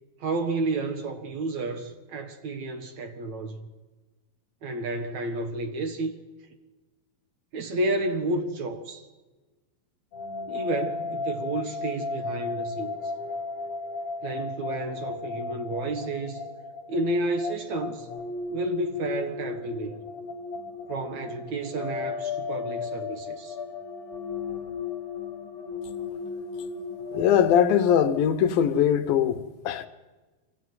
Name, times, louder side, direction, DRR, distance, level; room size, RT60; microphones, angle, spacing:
voice 1, 0.2-3.7 4.6-6.1 7.5-9.1 10.5-13.0 14.2-16.4 16.9-18.1 18.5-20.0 20.9-23.6, right 2 dB, 55° right, 2.5 m, -31 dB
sound 1, 10.1-27.7, left 4 dB, 60° left, 3.0 m, -35 dB
voice 2, 27.1-29.9, left 9 dB, 75° left, 2.6 m, -21 dB
24.5 x 15.5 x 9.4 m
omnidirectional pair, 4.3 m